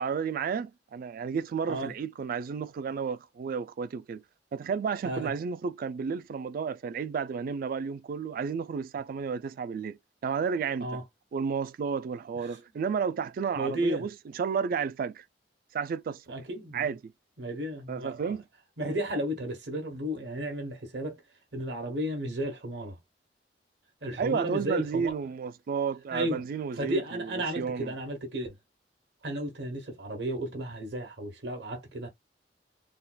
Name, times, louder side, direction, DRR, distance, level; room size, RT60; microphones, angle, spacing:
voice 1, 0.0-4.2 4.5-11.0 11.3-15.2 15.7-16.2 16.7-17.1 17.9-18.4 24.2-27.9, right 6 dB, 55° right, 0.3 m, -32 dB
voice 2, 1.6-1.9 5.0-5.3 10.8-11.0 12.3-12.6 13.5-14.1 16.3-16.9 17.4-18.4 18.8-21.2 21.5-23.0 24.0-25.1 26.1-26.4 26.7-28.5 29.2-32.1, right 1 dB, 70° right, 1.0 m, -33 dB
3.5 x 2.4 x 2.2 m
head